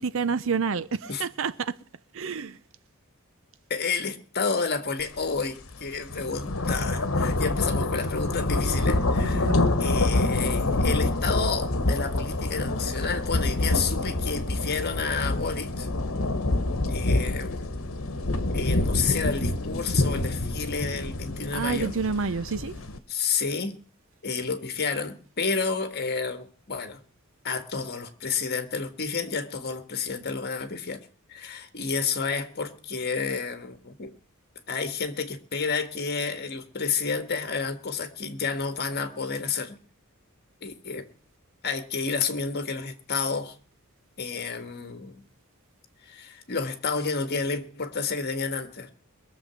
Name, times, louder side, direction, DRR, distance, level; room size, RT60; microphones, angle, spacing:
voice 1, 0.0-1.8 2.1-2.6 9.2-9.8 21.5-22.7, right 5 dB, 65° right, 0.7 m, -29 dB
voice 2, 3.7-15.9 16.9-17.9 18.5-22.0 23.1-23.7 24.2-27.0 27.4-34.1 34.7-39.8 40.6-41.1 41.6-43.6 44.2-45.2 46.0-48.9, left 5 dB, 50° left, 1.6 m, -30 dB
sound 1, 5.2-5.3 5.7-23.0, left 2 dB, 75° left, 1.3 m, -26 dB
22.0 x 7.3 x 5.9 m
head